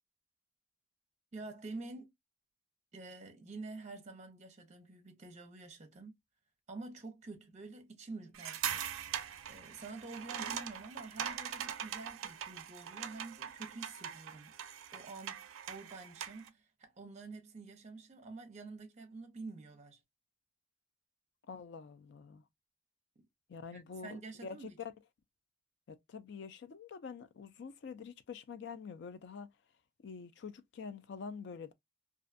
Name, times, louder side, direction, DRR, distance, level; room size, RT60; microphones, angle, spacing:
voice 1, 1.3-2.1 2.9-6.2 6.7-8.8 9.4-14.5 14.9-20.0 23.2-23.3 23.7-24.8, right 3 dB, 35° right, 0.6 m, -48 dB
sound 1, 8.3-16.5, right 9 dB, 75° right, 0.4 m, -42 dB
voice 2, 21.5-22.4 23.5-24.9 25.9-29.5 30.0-31.7, left 5 dB, 55° left, 0.4 m, -46 dB
2.5 x 2.2 x 2.4 m
head